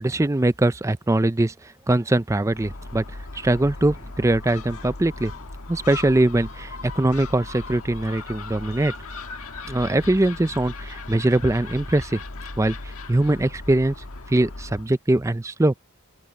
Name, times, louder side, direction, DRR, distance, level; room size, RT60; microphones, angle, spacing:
voice 1, 0.0-1.5 1.9-3.0 3.4-5.3 5.7-8.9 9.7-12.2 12.6-12.8 13.1-13.9 14.3-15.7, right 1 dB, 15° right, 0.4 m, -22 dB
Gull seagull, 2.5-14.9, left 3 dB, 70° left, 1.6 m, -37 dB
open air
head